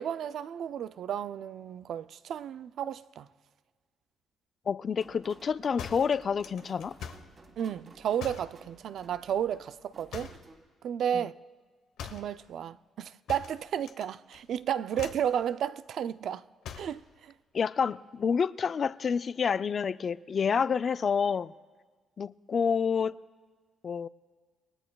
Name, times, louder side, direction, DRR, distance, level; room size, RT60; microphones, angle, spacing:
voice 1, 0.0-3.3 7.6-10.3 10.8-11.3 12.0-16.4 16.8-17.3, right 9 dB, 70° right, 0.4 m, -33 dB
voice 2, 4.7-7.0 11.1-11.3 17.5-21.5 22.2-23.2 23.8-24.1, left 6 dB, 45° left, 0.4 m, -28 dB
sound 1, 5.0-10.6, right 3 dB, 45° right, 2.3 m, -55 dB
sound 2, 5.8-7.3 8.2-8.6 10.1-10.5 12.0-12.3 13.3-14.1 14.3-14.6 14.9-15.3 16.6-17.0, left 7 dB, 85° left, 1.0 m, -42 dB
27.0 x 21.0 x 2.3 m
cardioid pair, 90°, 0 cm